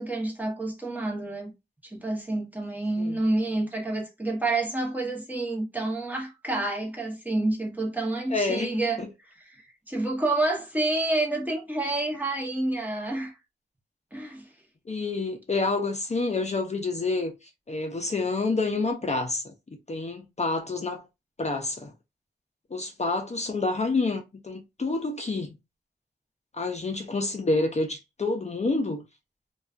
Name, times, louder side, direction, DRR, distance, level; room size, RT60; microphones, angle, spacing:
voice 1, 0.0-1.5 1.8-9.0 9.5-13.3 14.1-14.5, right 2 dB, 10° right, 0.9 m, -28 dB
voice 2, 8.3-8.7 9.0-9.1 14.9-19.5 19.9-21.1 21.4-21.9 22.7-25.5 26.5-29.0, left 3 dB, 40° left, 0.5 m, -28 dB
2.4 x 2.3 x 2.4 m
wide cardioid pair, 55°, 18 cm